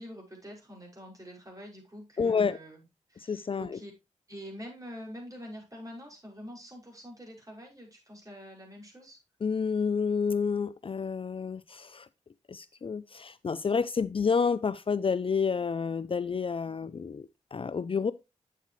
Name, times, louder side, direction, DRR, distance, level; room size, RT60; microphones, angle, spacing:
voice 1, 0.0-2.8 3.1-3.9 4.3-9.2, equal, 25° right, 5.8 m, -45 dB
voice 2, 2.2-2.6 3.3-3.8 9.4-12.1 12.5-18.1, left 5 dB, 45° left, 0.5 m, -29 dB
8.4 x 7.9 x 3.1 m
cardioid pair, 45°, 13 cm